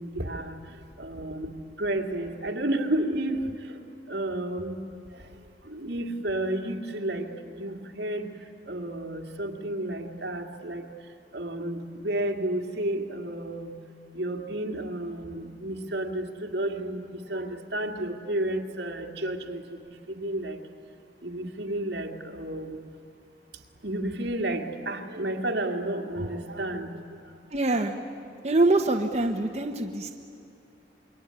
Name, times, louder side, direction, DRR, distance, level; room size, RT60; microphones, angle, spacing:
voice 1, 0.0-3.8 4.1-4.8 5.1-5.3 5.6-8.3 8.7-10.9 11.3-13.8 14.1-20.6 21.2-22.8 23.8-27.4, right 1 dB, 65° right, 3 dB, 2.3 m, -32 dB
voice 2, 27.5-27.9 28.4-30.1, right 2 dB, 35° right, 1 dB, 1.2 m, -24 dB
27.0 x 22.5 x 9.7 m, 2.4 s
head